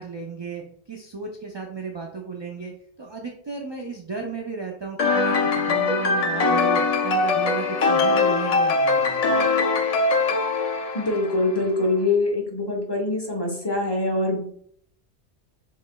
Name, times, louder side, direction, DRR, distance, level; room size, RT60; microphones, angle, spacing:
voice 1, 0.0-2.7 3.0-9.4, right 4 dB, 40° right, 1 dB, 0.3 m, -34 dB
sound 1, 5.0-11.6, left 3 dB, 60° left, 0.4 m, -22 dB
voice 2, 10.9-14.4, left 2 dB, 25° left, 0 dB, 0.9 m, -24 dB
5.9 x 3.1 x 2.2 m, 0.63 s
omnidirectional pair, 1.2 m